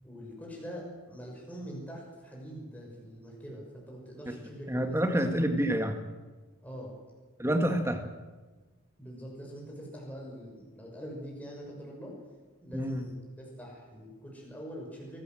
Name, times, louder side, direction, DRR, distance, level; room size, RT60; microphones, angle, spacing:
voice 1, 0.0-5.3 6.6-6.9 9.0-12.2 12.6-15.2, equal, 5° left, -2 dB, 6.1 m, -44 dB
voice 2, 4.7-6.0 7.4-8.0 12.7-13.0, equal, 10° right, 6 dB, 1.8 m, -28 dB
22.5 x 16.0 x 7.8 m, 1.3 s
head